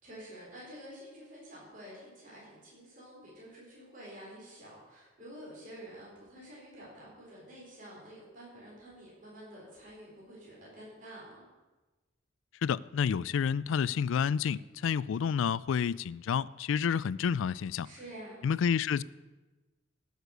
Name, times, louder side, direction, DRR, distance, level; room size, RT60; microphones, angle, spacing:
voice 1, 0.0-11.4 17.8-18.4, right 1 dB, 40° right, 4.1 m, -49 dB
voice 2, 12.6-17.9 18.4-19.0, left 7 dB, 70° left, 0.3 m, -29 dB
15.0 x 6.6 x 6.5 m
head